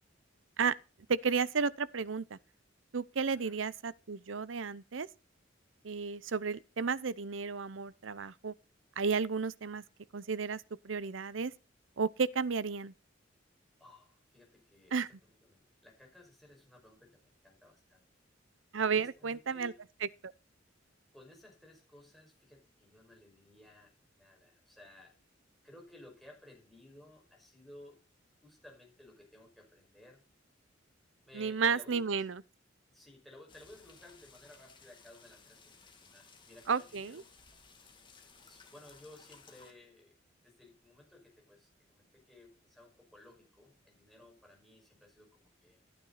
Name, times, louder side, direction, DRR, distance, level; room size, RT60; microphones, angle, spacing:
voice 1, 1.1-2.4 2.9-5.1 5.8-8.5 9.0-9.8 10.1-11.5 12.0-12.9 14.9-15.1 18.7-19.7 20.0-20.3 31.3-32.4 36.7-37.2, right 5 dB, 75° right, 0.7 m, -33 dB
voice 2, 13.8-15.0 15.4-18.1 18.9-19.8 21.1-25.1 25.6-28.0 28.4-30.2 31.2-32.3 32.9-37.3 38.4-40.2 40.4-45.9, left 1 dB, ahead, 5.7 m, -57 dB
sound 1, 33.5-39.7, left 5 dB, 25° left, 2.5 m, -59 dB
14.0 x 9.6 x 4.1 m
head